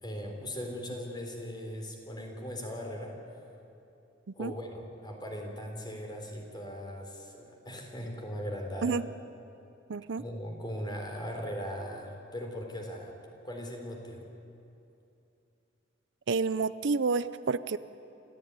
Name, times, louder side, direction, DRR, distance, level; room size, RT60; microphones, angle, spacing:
voice 1, 0.0-3.2 4.3-9.0 10.2-13.1 13.4-14.2, equal, 25° left, 2 dB, 3.7 m, -39 dB
voice 2, 9.9-10.2 16.3-17.8, right 4 dB, 65° right, 15 dB, 0.6 m, -29 dB
28.5 x 14.5 x 9.7 m, 2.8 s
head